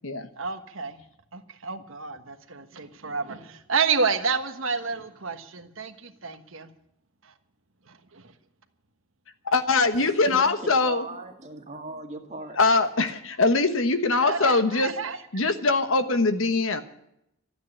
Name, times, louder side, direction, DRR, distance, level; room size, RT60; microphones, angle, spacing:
voice 1, 0.4-1.0 1.3-6.7 7.2-7.3 7.9-8.3 14.2-15.2, right 5 dB, 70° right, 8 dB, 1.3 m, -30 dB
voice 2, 9.4-11.0 12.6-14.9 15.3-16.8, left 3 dB, 70° left, 9 dB, 1.3 m, -22 dB
voice 3, 10.0-12.6 13.1-13.2, right 2 dB, 30° right, 3 dB, 1.9 m, -39 dB
13.5 x 9.3 x 9.8 m, 0.79 s
head